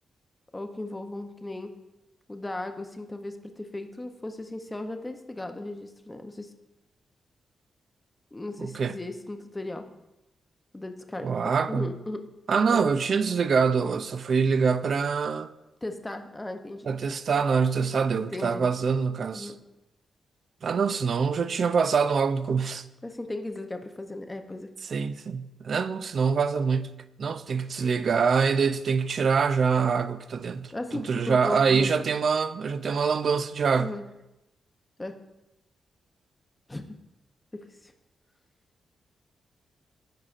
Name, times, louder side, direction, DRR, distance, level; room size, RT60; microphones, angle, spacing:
voice 1, 0.5-1.7 2.3-6.5 8.3-9.9 10.7-12.3 12.7-12.9 15.8-16.9 18.3-18.6 19.3-19.6 23.0-24.7 30.7-31.9 33.8-34.0 35.0-35.2 36.7-37.0 37.5-37.9, left 2 dB, 15° left, 0.6 m, -36 dB
voice 2, 8.6-8.9 11.2-11.9 12.5-15.5 16.8-19.5 20.6-22.8 24.8-33.9, right 5 dB, 50° right, 0.4 m, -25 dB
14.5 x 5.6 x 2.5 m
wide cardioid pair, 145°, 0 cm